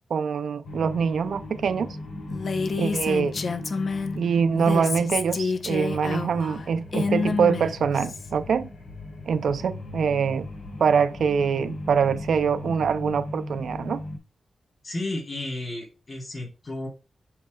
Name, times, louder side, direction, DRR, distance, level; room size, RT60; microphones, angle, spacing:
voice 1, 0.1-2.0 2.8-3.3 4.2-8.7 9.3-10.5 10.8-14.0, right 6 dB, 90° right, 0.5 m, -24 dB
sound 1, 0.6-14.2, left 2 dB, 90° left, 2.6 m, -38 dB
Female speech woman speaking, 2.3-4.2 4.5-8.3, left 4 dB, 50° left, 0.6 m, -28 dB
voice 2, 14.8-16.9, left 2 dB, 35° left, 3.6 m, -33 dB
7.7 x 7.3 x 2.3 m
wide cardioid pair, 160°, 0 cm